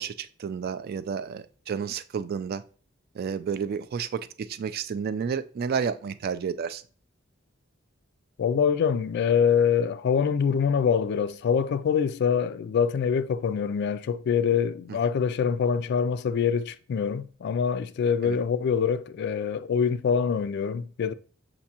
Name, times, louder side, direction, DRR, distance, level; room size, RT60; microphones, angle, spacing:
voice 1, 0.0-2.6 3.1-6.8 18.2-18.4, right 6 dB, 50° right, 0.3 m, -31 dB
voice 2, 8.4-21.1, left 7 dB, 55° left, 0.3 m, -25 dB
6.8 x 2.6 x 2.8 m
head